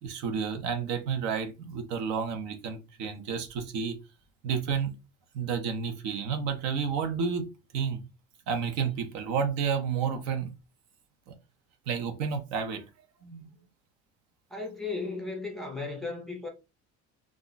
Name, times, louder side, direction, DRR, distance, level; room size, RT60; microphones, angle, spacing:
voice 1, 0.0-4.0 4.4-4.9 5.3-7.5 7.7-8.0 8.5-10.5 11.3-11.4 11.9-12.8 13.2-13.5, right 6 dB, 70° right, 0.7 m, -31 dB
voice 2, 14.5-16.5, left 3 dB, ahead, 0.4 m, -35 dB
2.5 x 2.2 x 3.8 m
cardioid pair, 180°, 29 cm